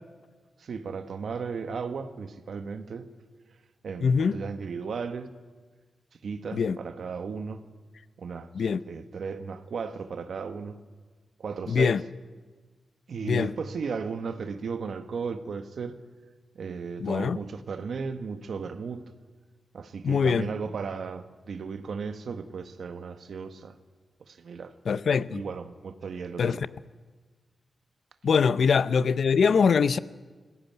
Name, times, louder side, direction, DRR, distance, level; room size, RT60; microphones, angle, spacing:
voice 1, 0.6-3.1 3.8-5.3 6.2-7.6 8.2-8.5 8.9-10.8 11.4-12.0 13.1-16.0 16.5-19.0 19.7-23.8 24.3-24.7 25.3-26.6, right 5 dB, 75° right, 1.3 m, -35 dB
voice 2, 4.0-4.4 6.5-6.8 8.5-8.8 11.7-12.0 13.2-13.5 17.0-17.4 20.0-20.5 24.9-25.4 26.4-26.7 28.2-30.0, left 6 dB, 70° left, 0.7 m, -23 dB
19.5 x 17.0 x 9.5 m
cardioid pair, 65°, 0 cm